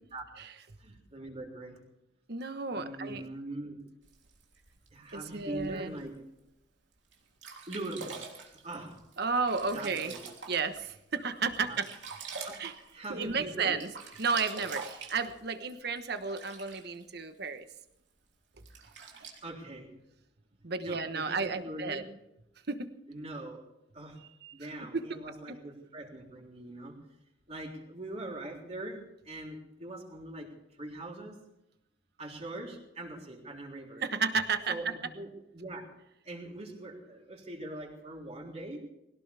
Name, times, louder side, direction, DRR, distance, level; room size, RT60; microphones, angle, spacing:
voice 1, 0.8-1.8 2.7-3.8 4.9-6.1 7.7-8.3 8.5-9.0 9.7-10.2 11.6-11.8 12.5-13.8 19.4-19.9 20.8-22.0 23.1-23.6 23.9-24.2 24.5-27.0 27.5-30.5 30.8-31.4 32.2-34.0 34.7-35.9 36.2-38.9, right 1 dB, 35° right, 0 dB, 3.7 m, -42 dB
voice 2, 2.3-3.2 5.1-5.9 9.2-10.2 10.5-11.9 12.6-12.7 13.1-13.9 14.2-17.6 20.6-22.0 22.7-22.9 24.4-24.5 24.9-25.0 34.0-34.9, right 4 dB, 60° right, 9 dB, 1.2 m, -32 dB
Sink (filling or washing), 4.0-6.0 6.6-6.7 7.1-7.2 7.4-10.9 11.3-13.4 13.7-17.0 17.8-17.9 18.6-19.4, right 5 dB, 80° right, 3.3 m, -45 dB
21.0 x 18.0 x 3.5 m, 0.86 s
head